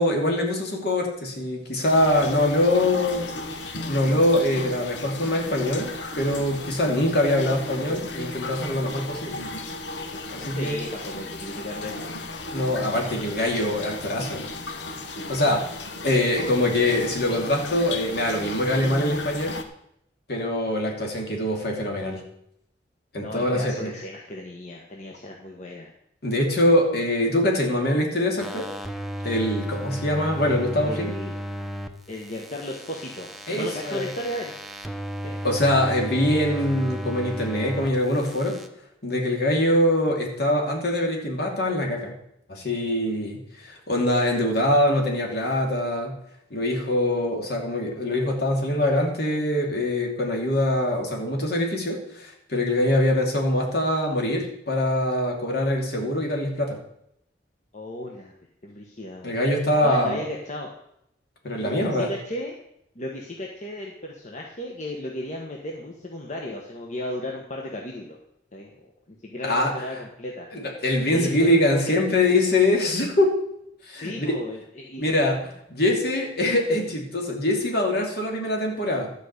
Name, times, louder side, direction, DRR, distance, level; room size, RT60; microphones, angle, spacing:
voice 1, 0.0-3.3 3.9-9.4 10.3-10.7 12.5-14.5 15.3-15.7 16.0-19.6 20.3-22.2 23.1-23.9 26.2-28.7 29.2-31.1 33.5-34.1 35.4-38.6 39.0-42.1 42.5-46.1 46.5-56.8 59.2-60.3 61.4-62.1 69.4-69.7 70.5-73.3 73.9-74.4 75.0-75.4 75.7-79.1, left 1 dB, 60° left, 1 dB, 2.7 m, -23 dB
sound 1, 1.8-19.6, left 2 dB, 75° left, 1.1 m, -35 dB
voice 2, 10.6-12.0 23.2-25.9 30.8-31.3 32.1-34.5 35.2-35.4 57.7-58.3 58.6-59.4 59.8-60.7 61.6-62.5 62.9-68.2 68.5-68.9 69.2-70.5 71.1-71.8 74.0-75.0, left 1 dB, 40° left, 0 dB, 1.3 m, -35 dB
sound 2, 28.4-31.9 32.2-37.9 38.2-38.7, equal, ahead, 0.8 m, -34 dB
12.5 x 5.1 x 8.1 m, 0.76 s
head